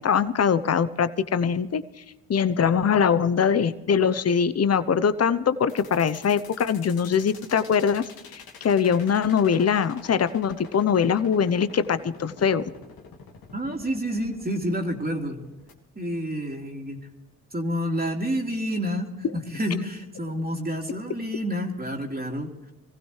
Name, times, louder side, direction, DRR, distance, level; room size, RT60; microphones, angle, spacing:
voice 1, 0.0-1.8 2.3-8.0 8.3-12.6, left 7 dB, 45° left, 13 dB, 0.9 m, -22 dB
sound 1, 5.7-15.7, left 5 dB, 75° left, 2.0 m, -46 dB
voice 2, 13.5-15.4 16.0-17.0 17.5-22.7, equal, 25° right, 1 dB, 2.8 m, -29 dB
23.0 x 15.5 x 3.3 m, 1.1 s
supercardioid pair, 50°, 36 cm